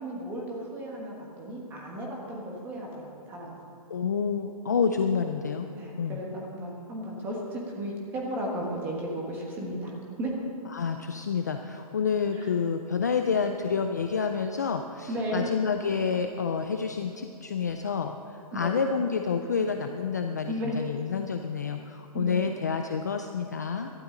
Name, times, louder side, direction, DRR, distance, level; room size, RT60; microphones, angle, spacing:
voice 1, 0.0-3.5 5.7-10.3 12.3-12.5 15.1-15.5 18.5-18.8 20.4-20.8 22.1-22.5, right 1 dB, 10° right, -2 dB, 1.3 m, -34 dB
voice 2, 3.9-5.7 6.0-6.2 10.7-23.9, left 6 dB, 30° left, 5 dB, 0.3 m, -29 dB
17.0 x 12.5 x 3.8 m, 2.5 s
hypercardioid pair, 180°, 20 cm